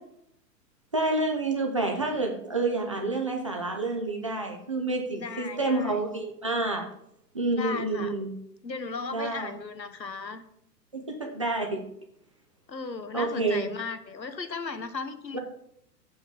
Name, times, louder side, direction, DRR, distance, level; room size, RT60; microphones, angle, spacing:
voice 1, 0.9-6.9 7.3-8.3 9.1-9.5 10.9-11.8 13.1-13.7 15.3-15.4, right 2 dB, 20° right, 2 dB, 0.4 m, -28 dB
voice 2, 5.1-6.0 7.6-8.1 8.6-10.4 12.7-15.4, left 4 dB, 90° left, 10 dB, 0.9 m, -36 dB
6.4 x 5.3 x 5.1 m, 0.73 s
figure-of-eight pair, 110°, 50 cm